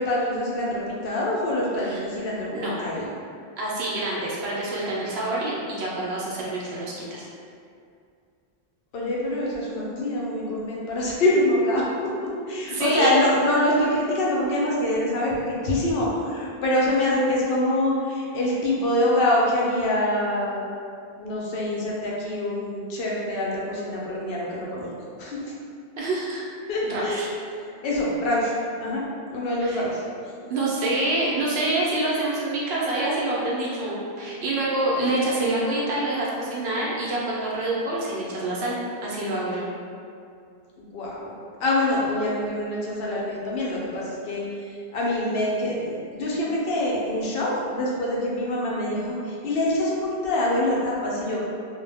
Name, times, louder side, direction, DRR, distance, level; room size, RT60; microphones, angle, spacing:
voice 1, 0.0-3.1 8.9-20.6 21.2-24.9 25.2-25.5 26.7-27.2 27.8-29.0 29.3-30.0 40.8-41.3 41.6-51.4, left 1 dB, 70° left, -4 dB, 0.7 m, -25 dB
voice 2, 3.6-7.2 12.6-13.2 26.0-27.3 29.6-29.8 30.5-38.7 39.0-39.7, right 2 dB, 80° right, -5 dB, 0.9 m, -26 dB
2.2 x 2.1 x 3.3 m, 2.4 s
omnidirectional pair, 1.0 m